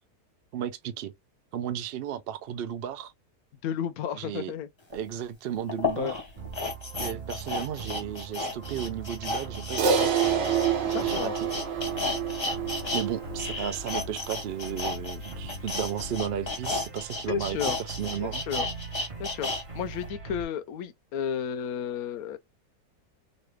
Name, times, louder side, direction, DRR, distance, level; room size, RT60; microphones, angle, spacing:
voice 1, 0.5-1.1 1.5-3.1 4.2-4.5 4.9-6.2 7.0-10.2 10.9-11.5 12.9-18.4, right 9 dB, 80° right, 0.5 m, -34 dB
voice 2, 3.6-4.7 6.0-6.1 10.9-11.3 17.3-17.8 18.2-18.7 19.2-22.4, left 8 dB, 70° left, 1.0 m, -33 dB
sound 1, 4.9-5.0 5.7-13.1 13.3-19.6 20.0-20.1, left 3 dB, 25° left, 0.6 m, -33 dB
sound 2, 6.4-20.4, right 3 dB, 30° right, 0.7 m, -41 dB
Crash cymbal, 9.8-14.4, right 7 dB, 55° right, 1.1 m, -28 dB
3.2 x 2.5 x 3.0 m
omnidirectional pair, 1.7 m